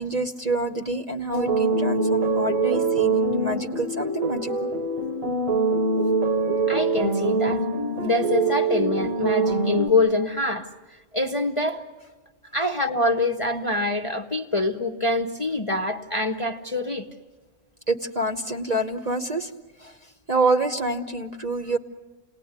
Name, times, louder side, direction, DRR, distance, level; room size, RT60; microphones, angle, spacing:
voice 1, 0.0-4.7 17.9-19.5 19.8-19.9 20.3-21.8, right 2 dB, 35° right, 6 dB, 0.9 m, -27 dB
sound 1, 1.3-9.9, right 3 dB, 85° right, 1.9 m, -24 dB
voice 2, 6.7-7.6 8.0-11.8 12.5-17.1, left 2 dB, 30° left, 3 dB, 0.7 m, -25 dB
28.5 x 19.0 x 9.6 m, 1.3 s
omnidirectional pair, 1.4 m